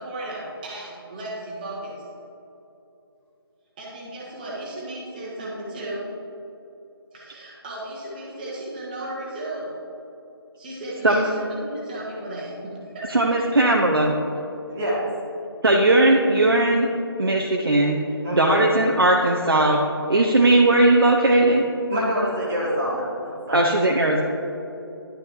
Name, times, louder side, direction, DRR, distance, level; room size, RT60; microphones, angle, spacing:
voice 1, 0.0-2.1 3.8-6.1 7.1-9.8 10.6-13.7, right 1 dB, 20° right, -4 dB, 1.4 m, -35 dB
voice 2, 13.1-14.1 15.6-16.9 17.2-18.0 18.3-19.8 20.1-21.6 23.5-24.2, right 2 dB, 65° right, 0 dB, 0.7 m, -18 dB
voice 3, 14.7-15.1 18.2-18.6 21.9-23.1 23.5-23.7, equal, 5° right, -8 dB, 0.3 m, -26 dB
11.5 x 5.6 x 3.0 m, 2.9 s
figure-of-eight pair, 155°, 13 cm